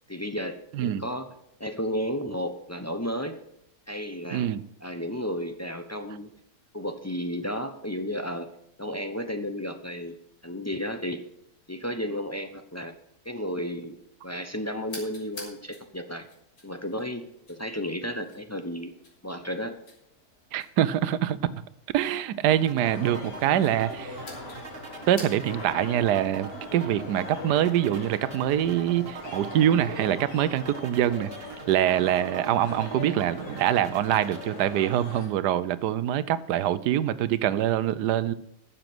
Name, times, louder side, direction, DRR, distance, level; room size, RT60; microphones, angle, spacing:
voice 1, 0.1-1.3 1.6-3.4 3.9-4.5 4.8-6.3 6.7-8.5 8.8-10.1 10.4-11.2 11.7-12.9 13.2-14.0 14.2-16.2 16.6-17.2 17.5-18.9 19.2-19.8, equal, 25° left, 7 dB, 0.3 m, -33 dB
voice 2, 4.3-4.6 20.5-21.4 21.9-24.1 25.1-31.3 31.7-38.3, right 11 dB, 80° right, 16 dB, 1.2 m, -24 dB
sound 1, 14.8-25.7, left 2 dB, 65° left, 3.6 m, -50 dB
sound 2, 22.5-34.5, right 5 dB, 40° right, 1.1 m, -42 dB
sound 3, 22.8-35.3, left 2 dB, 90° left, 2.7 m, -41 dB
12.0 x 7.4 x 6.1 m, 0.79 s
omnidirectional pair, 1.8 m